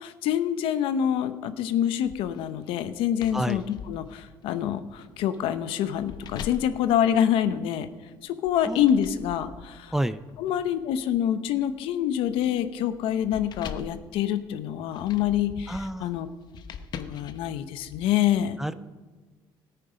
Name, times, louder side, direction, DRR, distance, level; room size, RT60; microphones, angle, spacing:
voice 1, 0.0-7.9 8.2-9.9 10.4-16.3 17.0-18.6, left 10 dB, 85° left, 11 dB, 0.8 m, -26 dB
sound 1, 2.0-7.9 8.4-18.0, left 6 dB, 50° left, 0.9 m, -44 dB
voice 2, 9.9-10.2 15.7-16.1 18.6-18.7, right 1 dB, 5° right, 13 dB, 0.4 m, -29 dB
17.0 x 9.2 x 5.1 m, 1.3 s
cardioid pair, 145°, 9 cm